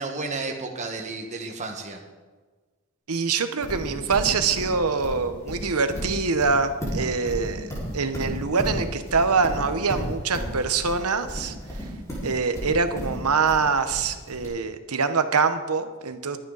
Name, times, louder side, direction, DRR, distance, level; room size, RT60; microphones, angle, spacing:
voice 1, 0.0-2.0, right 3 dB, 35° right, 2 dB, 1.5 m, -32 dB
voice 2, 3.1-11.5 12.2-16.4, right 4 dB, 90° right, 9 dB, 1.1 m, -24 dB
Livestock farm animals working animals, 3.6-14.5, equal, 15° left, 5.0 m, -33 dB
22.5 x 9.2 x 4.1 m, 1.4 s
head